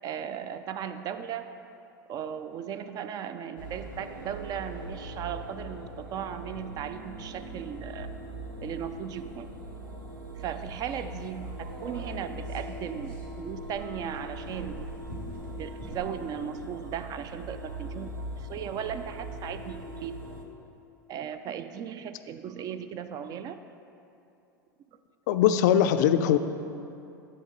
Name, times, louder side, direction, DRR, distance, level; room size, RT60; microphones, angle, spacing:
voice 1, 0.0-1.5 2.1-8.1 8.6-9.5 10.3-14.9 15.6-20.1 21.1-23.6, right 8 dB, 35° right, 10 dB, 0.4 m, -37 dB
sound 1, 3.6-20.4, right 1 dB, 85° right, 0.6 m, -40 dB
sound 2, 10.9-16.1, right 2 dB, 60° right, 1.6 m, -46 dB
voice 2, 25.3-26.4, left 10 dB, 60° left, 10 dB, 0.4 m, -21 dB
8.4 x 3.7 x 5.2 m, 2.7 s
figure-of-eight pair, 85°, 11 cm